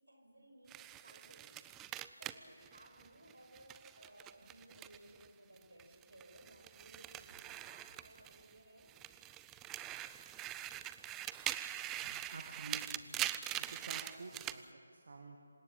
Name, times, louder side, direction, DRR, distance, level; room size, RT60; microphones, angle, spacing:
voice 1, 0.1-1.6 2.2-9.0, right 1 dB, 80° right, 3 dB, 6.1 m, -60 dB
sound 1, 0.7-5.3 5.6-8.5 8.9-14.6, right 13 dB, 10° right, 0.5 m, -43 dB
voice 2, 12.0-13.2 13.6-15.4, right 3 dB, 55° right, 2 dB, 1.9 m, -50 dB
26.5 x 17.0 x 7.4 m, 2.4 s
figure-of-eight pair, 155°, 0 cm